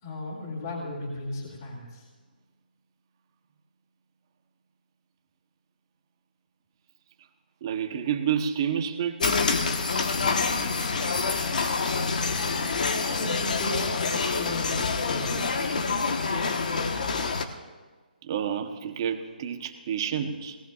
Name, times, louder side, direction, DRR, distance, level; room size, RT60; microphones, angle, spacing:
voice 1, 0.0-2.0 12.9-15.6, left 2 dB, 25° left, -4 dB, 2.6 m, -36 dB
voice 2, 7.6-9.4 18.2-20.6, right 8 dB, 25° right, 6 dB, 0.9 m, -29 dB
sound 1, 9.2-17.5, left 4 dB, 55° left, 1.2 m, -27 dB
21.0 x 18.0 x 2.4 m, 1.4 s
hypercardioid pair, 175°, 5 cm